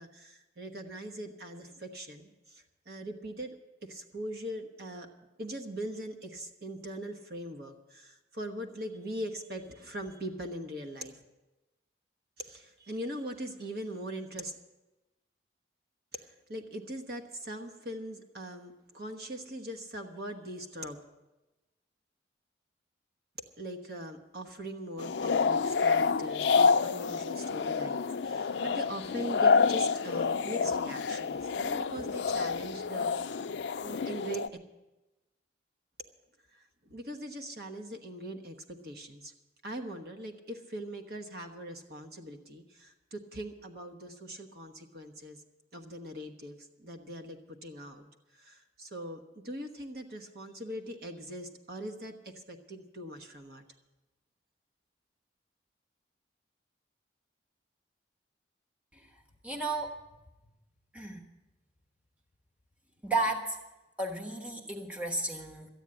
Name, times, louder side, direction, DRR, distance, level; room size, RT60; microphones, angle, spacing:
voice 1, 0.0-3.6 3.8-5.1 5.4-11.2 12.4-14.6 16.1-21.0 23.6-33.5 33.8-34.5 36.5-39.3 39.6-45.4 45.7-48.1 48.3-53.6, equal, 55° right, 5 dB, 1.2 m, -41 dB
sound 1, 25.0-34.5, left 5 dB, 70° left, 0.4 m, -28 dB
voice 2, 59.4-59.9 60.9-61.2 63.0-63.6 64.0-65.7, right 2 dB, 5° right, 1 dB, 1.2 m, -33 dB
13.5 x 9.1 x 8.8 m, 1.0 s
head